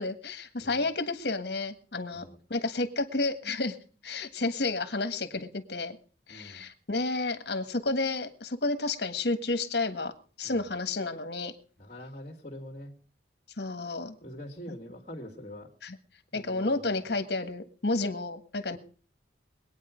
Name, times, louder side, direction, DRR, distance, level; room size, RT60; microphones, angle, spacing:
voice 1, 0.0-3.8 4.0-6.0 6.3-10.1 10.4-11.5 13.6-14.1 14.7-14.8 15.8-16.0 16.3-18.8, left 3 dB, 60° left, 9 dB, 1.5 m, -31 dB
voice 2, 6.3-6.6 10.4-10.7 11.8-12.9 14.2-15.7 16.3-17.0 18.7-18.8, equal, 35° left, -3 dB, 2.2 m, -44 dB
22.5 x 9.3 x 5.1 m, 0.41 s
head